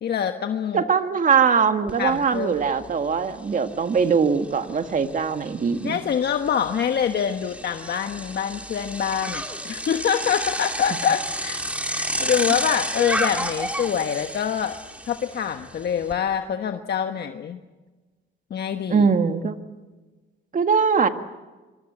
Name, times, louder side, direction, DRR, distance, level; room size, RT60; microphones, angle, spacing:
voice 1, 0.0-0.8 2.0-2.5 5.8-11.6 11.9-14.8 15.1-17.6 18.5-19.1, left 8 dB, 55° left, 6 dB, 1.3 m, -25 dB
voice 2, 0.7-6.0 18.9-19.6 20.5-21.1, right 6 dB, 40° right, 8 dB, 1.8 m, -21 dB
Bicycle, 1.9-2.0 2.4-16.1, right 1 dB, 5° right, 3.0 m, -32 dB
25.0 x 23.5 x 8.0 m, 1.3 s
cardioid pair, 90°, 20 cm